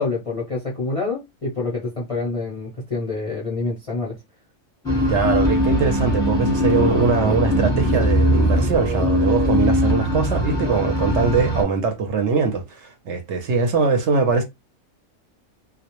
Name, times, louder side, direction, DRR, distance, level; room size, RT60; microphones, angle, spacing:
voice 1, 0.0-4.2, left 3 dB, 45° left, 0.4 m, -27 dB
sound 1, 4.8-11.6, equal, 5° left, 0.8 m, -20 dB
voice 2, 5.1-14.4, right 4 dB, 65° right, 0.8 m, -22 dB
2.2 x 2.0 x 2.9 m
omnidirectional pair, 1.4 m